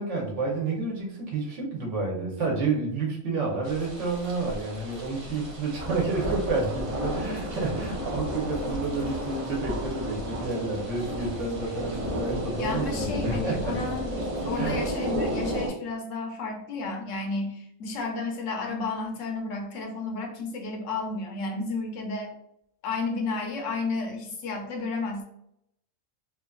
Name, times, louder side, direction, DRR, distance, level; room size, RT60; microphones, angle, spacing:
voice 1, 0.0-13.7 14.5-14.8, right 3 dB, 65° right, -1 dB, 1.0 m, -30 dB
sound 1, 3.6-15.7, equal, 40° right, 0.5 m, -32 dB
voice 2, 12.6-22.3 22.8-25.2, left 3 dB, 70° left, 2 dB, 0.9 m, -32 dB
3.0 x 2.3 x 2.3 m, 0.75 s
omnidirectional pair, 1.4 m